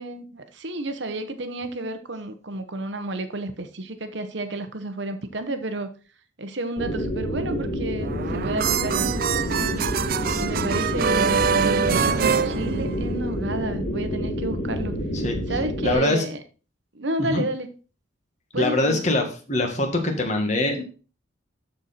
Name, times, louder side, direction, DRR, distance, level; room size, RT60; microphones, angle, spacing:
voice 1, 0.0-5.9 6.4-9.9 10.4-14.9 15.5-16.4 16.9-17.7 18.5-19.0, right 1 dB, 60° right, 9 dB, 1.1 m, -31 dB
sound 1, 6.8-15.9, equal, 55° left, 2.9 m, -28 dB
sound 2, 8.0-13.4, right 6 dB, 45° right, 0.4 m, -24 dB
voice 2, 15.8-16.2 17.2-17.4 18.6-20.8, left 2 dB, 35° left, 3 dB, 1.9 m, -23 dB
13.0 x 4.6 x 4.3 m, 0.36 s
head